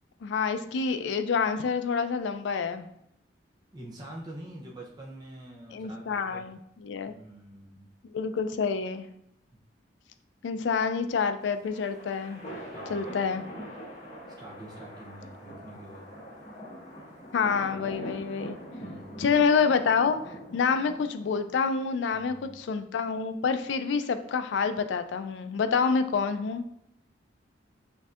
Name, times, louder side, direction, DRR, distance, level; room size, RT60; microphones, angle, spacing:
voice 1, 0.2-2.9 5.7-7.1 8.1-9.1 10.4-12.4 12.9-13.4 17.3-18.6 19.2-26.6, left 5 dB, 70° left, 9 dB, 0.3 m, -27 dB
voice 2, 3.7-6.5 7.1-7.9 12.7-13.3 14.4-16.1 18.8-19.2 22.1-22.5, right 1 dB, 25° right, -4 dB, 0.6 m, -45 dB
sound 1, 11.4-21.9, equal, 40° left, 1.4 m, -43 dB
6.3 x 2.6 x 2.4 m, 0.77 s
head